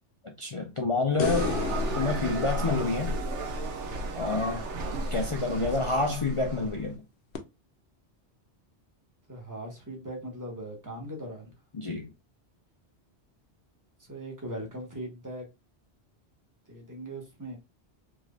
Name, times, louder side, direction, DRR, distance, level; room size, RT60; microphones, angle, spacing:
voice 1, 0.4-1.5 1.9-3.1 4.2-4.7 5.1-7.0 11.7-12.1, left 3 dB, 40° left, 0.5 m, -28 dB
sound 1, 1.2-4.5 7.3-7.4, left 6 dB, 70° left, 0.9 m, -35 dB
sound 2, 1.2-6.8, right 2 dB, 85° right, 1.1 m, -33 dB
voice 2, 5.5-5.9 9.3-11.5 14.0-15.5 16.7-17.6, right 1 dB, 15° right, 1.1 m, -39 dB
3.6 x 3.1 x 2.4 m
omnidirectional pair, 1.2 m